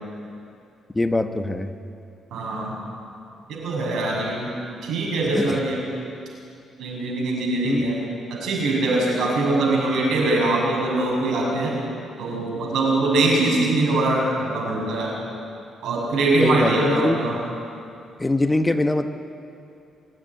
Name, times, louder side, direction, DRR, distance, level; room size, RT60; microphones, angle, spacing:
voice 1, 0.9-1.7 5.3-5.6 7.6-8.0 16.4-17.2 18.2-19.1, left 2 dB, 15° left, 8 dB, 1.0 m, -23 dB
voice 2, 2.3-2.8 3.5-4.5 4.8-5.8 6.8-8.0 8.3-11.8 12.2-15.2 15.8-17.4, right 2 dB, 75° right, -2 dB, 6.9 m, -22 dB
27.0 x 9.9 x 10.0 m, 2.6 s
cardioid pair, 90°, 0 cm